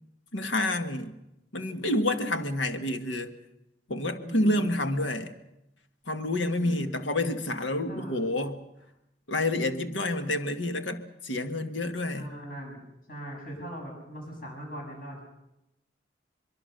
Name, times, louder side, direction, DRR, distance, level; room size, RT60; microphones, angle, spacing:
voice 1, 0.3-1.2 1.5-3.3 3.9-5.3 6.1-8.6 9.3-12.3, left 1 dB, 90° left, 1.8 m, -28 dB
voice 2, 3.9-4.7 6.6-7.0 7.9-8.2 12.1-12.8 13.1-15.2, equal, 50° left, 7.7 m, -41 dB
23.5 x 23.0 x 6.7 m
head